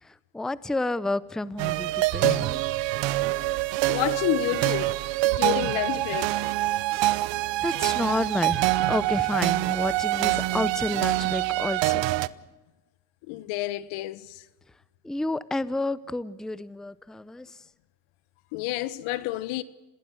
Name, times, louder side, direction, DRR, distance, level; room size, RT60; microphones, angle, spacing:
voice 1, 0.0-2.6 7.6-12.0 15.0-17.6, left 2 dB, ahead, 0.7 m, -30 dB
sound 1, 1.6-12.3, right 17 dB, 65° right, 0.9 m, -25 dB
voice 2, 3.9-5.0 5.2-6.5 13.3-14.4 18.5-19.6, left 17 dB, 75° left, 1.3 m, -30 dB
27.0 x 19.0 x 6.4 m
supercardioid pair, 85°, 49 cm